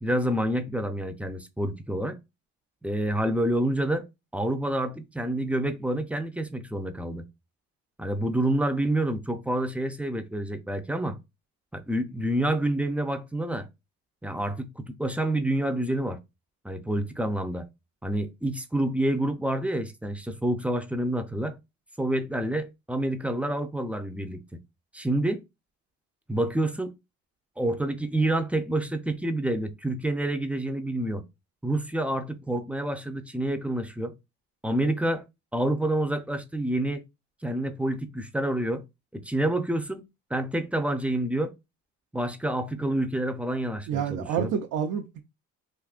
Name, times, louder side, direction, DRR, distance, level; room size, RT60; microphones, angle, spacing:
voice 1, 0.0-2.2 2.8-4.1 4.3-7.2 8.0-11.2 11.7-13.7 14.2-16.2 16.6-17.7 18.0-21.6 22.0-24.4 24.9-25.4 26.3-26.9 27.6-31.2 31.6-34.1 34.6-35.2 35.5-37.0 37.4-38.8 39.1-40.0 40.3-41.5 42.1-44.5, right 1 dB, 5° right, 0.5 m, -28 dB
voice 2, 43.9-45.2, right 8 dB, 85° right, 0.6 m, -28 dB
3.6 x 2.5 x 2.4 m
cardioid pair, 90°, 30 cm